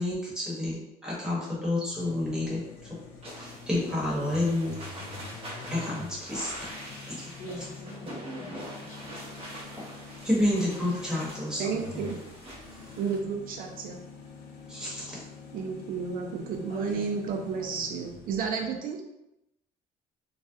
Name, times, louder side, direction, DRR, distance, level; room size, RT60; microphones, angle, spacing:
voice 1, 0.0-2.6 3.3-4.8 5.7-6.5 7.1-7.3 10.2-12.0 14.7-15.2, left 1 dB, 5° right, -7 dB, 1.1 m, -29 dB
sound 1, 1.9-18.8, left 4 dB, 85° left, 0.5 m, -46 dB
sound 2, 3.2-13.2, equal, 35° right, 0.7 m, -44 dB
voice 2, 7.4-8.5 8.8-9.0 9.5-9.7 16.7-17.1 17.6-18.0 18.3-18.7, equal, 50° left, -4 dB, 0.9 m, -44 dB
voice 3, 11.6-12.2 13.0-14.0 15.5-19.0, right 5 dB, 60° right, 2 dB, 0.4 m, -32 dB
2.3 x 2.1 x 2.6 m, 0.88 s
cardioid pair, 110°, 17 cm